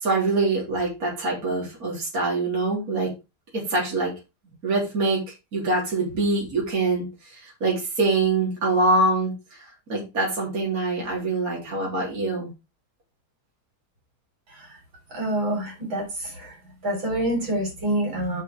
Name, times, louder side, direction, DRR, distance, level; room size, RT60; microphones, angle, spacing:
voice 1, 0.0-3.1 3.5-4.1 4.6-5.2 5.5-9.6 9.9-12.5, right 2 dB, 40° right, -4 dB, 3.8 m, -24 dB
voice 2, 15.1-16.6 16.8-18.4, right 1 dB, 65° right, 0 dB, 4.8 m, -27 dB
6.8 x 6.7 x 4.5 m, 0.26 s
omnidirectional pair, 2.3 m